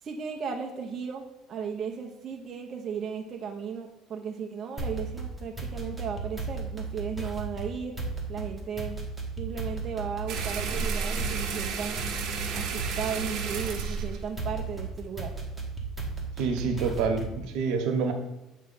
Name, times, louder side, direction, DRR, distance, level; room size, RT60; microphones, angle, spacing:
voice 1, 0.0-8.0 8.3-9.0 9.4-12.0 12.5-15.3, right 6 dB, 35° right, 1 dB, 0.6 m, -35 dB
sound 1, 4.8-17.5, right 4 dB, ahead, 1.1 m, -35 dB
sound 2, 10.3-15.2, right 5 dB, 55° right, 1.0 m, -33 dB
voice 2, 16.4-18.1, right 5 dB, 75° right, 4 dB, 1.1 m, -27 dB
7.6 x 3.1 x 5.5 m, 0.95 s
cardioid pair, 145°, 0 cm